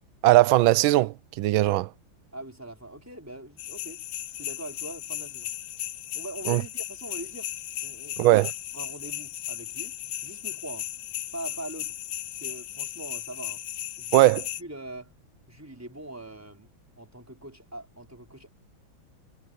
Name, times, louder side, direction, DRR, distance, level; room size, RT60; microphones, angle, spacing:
voice 1, 0.2-1.9 6.5-6.6 8.2-8.5 14.1-14.4, right 16 dB, 80° right, 1.4 m, -19 dB
voice 2, 2.3-4.0 4.4-5.5 6.1-7.5 7.8-8.4 8.7-10.0 10.2-10.9 11.3-11.9 12.4-13.6 14.0-14.3 14.6-15.1 15.5-16.7 17.0-18.5, right 1 dB, 5° right, 4.7 m, -42 dB
sound 1, 3.6-14.6, left 13 dB, 75° left, 1.6 m, -36 dB
omnidirectional pair, 2.2 m